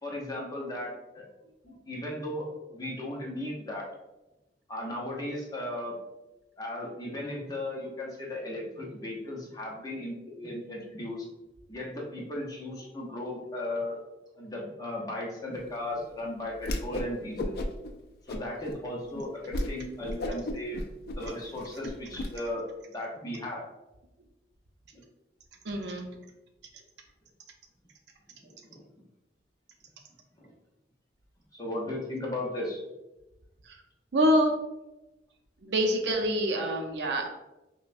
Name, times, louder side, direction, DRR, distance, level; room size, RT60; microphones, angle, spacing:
voice 1, 0.0-3.9 4.7-6.0 6.6-11.3 11.7-14.0 14.4-17.6 18.3-20.8 21.2-23.6 24.9-25.0 28.4-28.8 30.4-30.5 31.5-32.8, left 1 dB, 20° left, -3 dB, 0.8 m, -36 dB
Whoosh swoosh swish, 16.6-17.1 17.4-17.9 18.3-18.8 19.1-19.2 19.5-19.7 20.0-22.3, left 1 dB, 55° left, 0.4 m, -33 dB
voice 2, 25.6-26.1 33.6-33.8 34.1-34.5 35.6-37.3, equal, 70° right, 3 dB, 0.6 m, -26 dB
5.4 x 2.2 x 2.5 m, 0.99 s
head